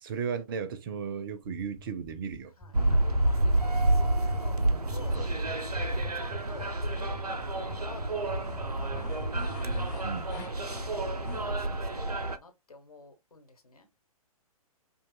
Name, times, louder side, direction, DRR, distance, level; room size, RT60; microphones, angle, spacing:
voice 1, 0.0-3.0 4.6-4.8 10.0-10.3, right 6 dB, 35° right, 0.6 m, -36 dB
sound 1, 1.4-9.9, equal, ahead, 0.7 m, -44 dB
voice 2, 2.6-5.2 5.9-9.1 9.9-10.2 10.6-13.9, left 3 dB, 75° left, 1.2 m, -50 dB
sound 2, 2.7-12.4, right 1 dB, 85° right, 0.6 m, -29 dB
sound 3, 5.0-11.4, left 8 dB, 30° left, 0.8 m, -50 dB
5.3 x 2.3 x 2.2 m
figure-of-eight pair, 125°, 19 cm